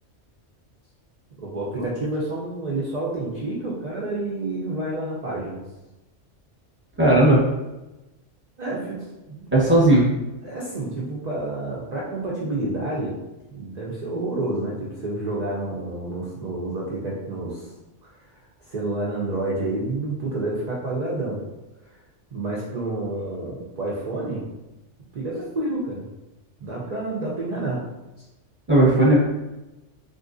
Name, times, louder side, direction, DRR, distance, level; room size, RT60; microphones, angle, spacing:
voice 1, 1.4-5.6 8.6-9.0 9.3-9.8 10.4-13.1 13.5-17.7 18.0-21.4 21.9-22.0 22.3-24.4 25.1-26.0 26.6-27.8 28.2-28.3, right 2 dB, 50° right, -5 dB, 0.5 m, -29 dB
voice 2, 7.0-7.4 9.5-10.1 28.7-29.2, right 1 dB, 10° right, -6 dB, 0.8 m, -16 dB
3.5 x 2.5 x 2.5 m, 1.0 s
omnidirectional pair, 1.3 m